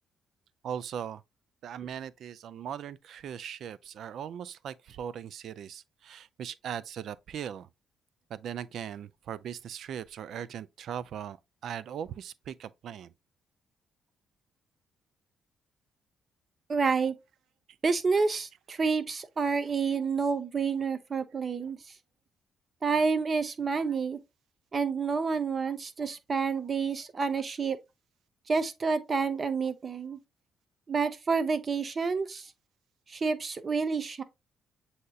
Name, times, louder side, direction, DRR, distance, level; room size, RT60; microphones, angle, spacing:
voice 1, 0.6-1.2 1.6-7.7 8.3-11.4 11.6-13.1 19.9-20.1, right 9 dB, 70° right, 0.3 m, -39 dB
voice 2, 16.7-17.1 17.8-21.8 22.8-24.2 24.7-27.8 28.5-30.2 30.9-32.5 33.1-34.2, right 5 dB, 40° right, 0.7 m, -29 dB
7.6 x 2.8 x 2.3 m
cardioid pair, 90°, 0 cm